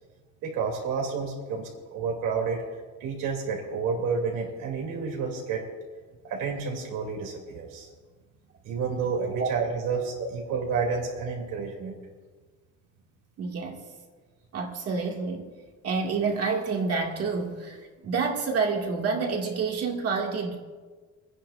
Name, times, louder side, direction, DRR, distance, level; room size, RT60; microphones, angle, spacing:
voice 1, 0.4-2.6 3.0-5.6 6.2-7.9 8.6-12.0, right 5 dB, 85° right, 0 dB, 3.0 m, -30 dB
voice 2, 13.4-13.8 14.5-15.5 15.8-17.8 18.0-20.6, right 4 dB, 50° right, 0 dB, 2.2 m, -28 dB
29.0 x 10.0 x 2.6 m, 1.4 s
cardioid pair, 125°, 31 cm